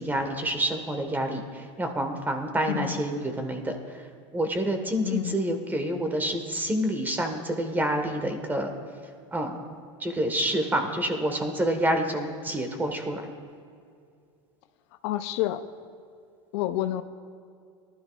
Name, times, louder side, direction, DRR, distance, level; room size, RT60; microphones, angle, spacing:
voice 1, 0.0-3.8 4.3-8.7 9.3-13.3, right 1 dB, 10° right, 5 dB, 1.5 m, -28 dB
voice 2, 2.7-3.0 5.0-5.4 15.0-15.6 16.5-17.0, left 14 dB, 70° left, 10 dB, 0.6 m, -28 dB
19.0 x 12.5 x 2.4 m, 2.3 s
supercardioid pair, 110°, 15 cm